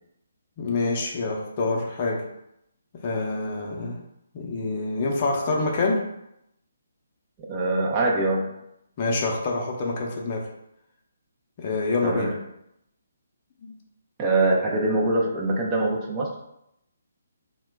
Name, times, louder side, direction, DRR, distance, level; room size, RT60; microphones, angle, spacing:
voice 1, 0.6-2.2 3.0-4.0 4.3-6.0 9.0-10.5 11.6-12.3 13.6-13.7, left 3 dB, 35° left, -1 dB, 0.6 m, -26 dB
voice 2, 7.5-8.6 12.0-12.3 14.2-16.3, right 2 dB, 20° right, -2 dB, 0.5 m, -23 dB
2.8 x 2.2 x 3.3 m, 0.80 s
figure-of-eight pair, 140°, 0 cm